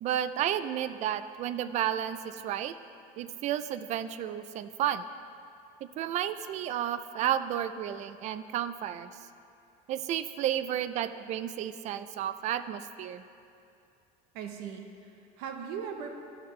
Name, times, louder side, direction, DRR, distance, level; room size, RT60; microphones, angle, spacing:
voice 1, 0.0-2.7 3.2-5.0 6.0-9.1 9.9-13.2, right 10 dB, 40° right, 12 dB, 0.4 m, -32 dB
voice 2, 14.3-16.1, right 7 dB, 70° right, 4 dB, 0.9 m, -39 dB
13.5 x 5.9 x 3.2 m, 2.5 s
supercardioid pair, 125°, 18 cm